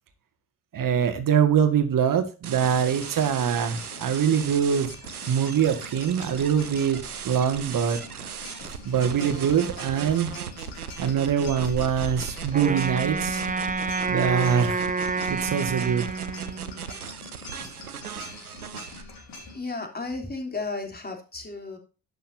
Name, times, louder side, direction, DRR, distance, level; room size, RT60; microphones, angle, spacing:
voice 1, 0.7-4.9 5.3-7.0 7.2-8.0 8.8-10.3 11.0-13.4 14.1-14.9 15.3-16.1, right 8 dB, 50° right, 8 dB, 2.1 m, -23 dB
sound 1, 2.4-19.0, right 8 dB, 90° right, 0.7 m, -37 dB
sound 2, 2.6-19.6, left 3 dB, 55° left, 4.2 m, -43 dB
Wind instrument woodwind instrument, 12.5-16.9, right 4 dB, 20° right, 0.9 m, -29 dB
voice 2, 19.5-21.8, left 3 dB, 20° left, 4 dB, 3.4 m, -33 dB
11.5 x 9.1 x 2.8 m, 0.33 s
figure-of-eight pair, 40°, 43 cm